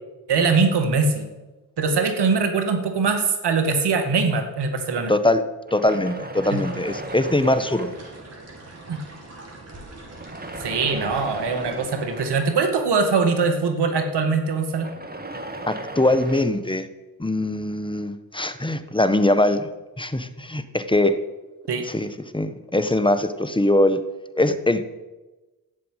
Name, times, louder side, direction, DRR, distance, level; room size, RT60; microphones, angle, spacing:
voice 1, 0.3-1.3 1.8-5.1 8.9-9.0 10.6-14.9 21.7-21.9, right 4 dB, 75° right, 6 dB, 2.2 m, -22 dB
sound 1, 3.9-5.1 5.6-8.8 10.1-13.5 14.6-16.5, right 1 dB, 20° right, 2.1 m, -37 dB
voice 2, 5.1-5.4 5.7-7.9 15.7-16.9 17.2-19.7 20.0-21.2 21.8-24.0 24.3-24.8, left 1 dB, 10° left, 11 dB, 1.3 m, -22 dB
sound 2, 6.4-12.5, right 2 dB, 35° right, 5.5 m, -43 dB
12.0 x 7.8 x 9.2 m, 1.1 s
supercardioid pair, 45°, 41 cm